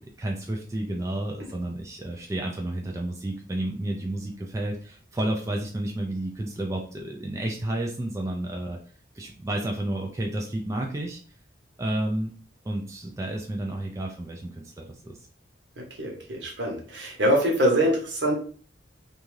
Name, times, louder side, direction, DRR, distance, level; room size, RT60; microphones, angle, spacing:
voice 1, 0.2-8.8 9.1-11.2 11.8-12.3 12.6-15.2, right 1 dB, 15° right, 0 dB, 0.3 m, -31 dB
voice 2, 15.8-18.4, equal, 70° right, 0 dB, 0.9 m, -24 dB
2.6 x 2.3 x 3.1 m, 0.42 s
head